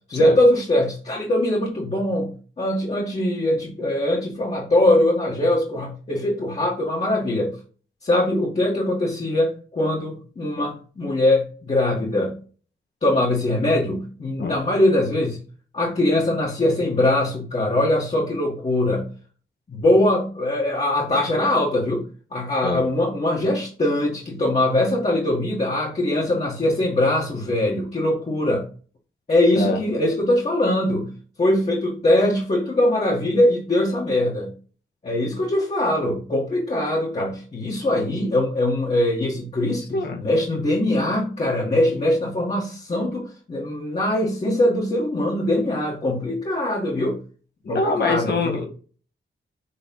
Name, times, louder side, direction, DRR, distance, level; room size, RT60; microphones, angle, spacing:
voice 1, 0.1-7.6 8.0-12.4 13.0-15.4 15.7-19.1 19.7-22.0 22.3-28.7 29.3-31.1 31.4-34.5 35.0-47.2 47.7-48.7, left 1 dB, 30° left, -3 dB, 1.7 m, -22 dB
voice 2, 47.6-48.7, left 3 dB, 55° left, 3 dB, 1.6 m, -24 dB
7.0 x 3.4 x 5.3 m, 0.39 s
wide cardioid pair, 145°, 21 cm